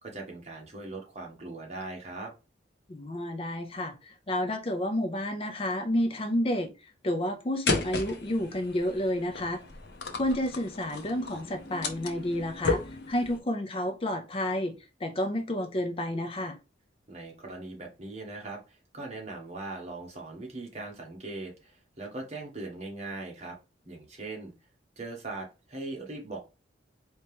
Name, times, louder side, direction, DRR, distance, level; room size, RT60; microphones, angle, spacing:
voice 1, 0.0-2.3 17.1-23.6 23.8-24.5 25.0-26.4, right 2 dB, 35° right, 1.3 m, -40 dB
voice 2, 2.9-9.6 10.2-14.8 15.0-16.6, left 1 dB, 30° left, 0.5 m, -30 dB
sound 1, 7.7-13.4, left 3 dB, 65° left, 0.8 m, -34 dB
4.3 x 2.9 x 3.4 m
head